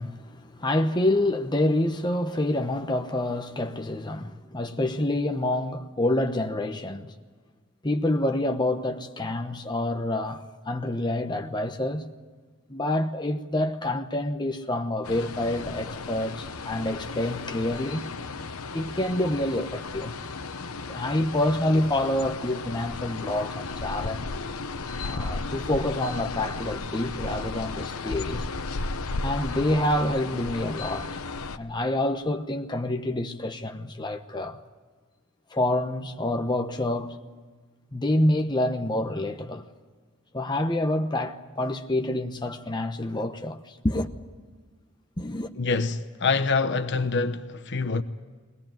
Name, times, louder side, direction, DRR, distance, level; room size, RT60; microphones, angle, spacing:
voice 1, 0.0-7.1 7.8-12.1 12.7-18.0 18.7-20.1 20.8-24.3 25.0-28.5 29.2-31.2 31.6-34.6 35.5-37.2 37.9-39.7 40.3-44.1 45.2-45.5, left 1 dB, 20° left, 1.1 m, -27 dB
sound 1, 15.0-31.6, left 3 dB, 85° left, 1.0 m, -34 dB
voice 2, 45.6-48.0, left 4 dB, 55° left, 1.0 m, -25 dB
22.0 x 18.5 x 9.1 m
head